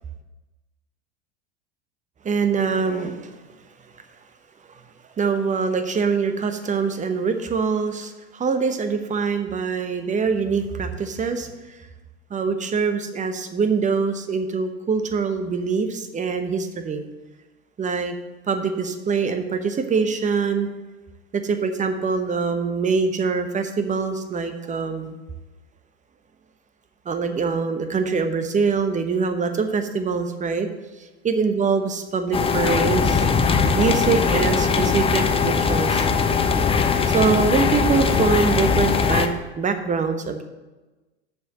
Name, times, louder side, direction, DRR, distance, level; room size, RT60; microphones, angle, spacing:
voice 1, 2.2-3.4 5.2-11.8 12.3-17.0 17.8-18.1 18.5-20.7 21.3-25.2 27.0-30.7 31.0-33.3 33.7-36.1 37.1-40.4, right 5 dB, 20° right, 7 dB, 0.9 m, -24 dB
sound 1, 32.3-39.3, left 5 dB, 15° left, 0.6 m, -20 dB
7.0 x 6.1 x 6.5 m, 1.2 s
hypercardioid pair, 85°, 34 cm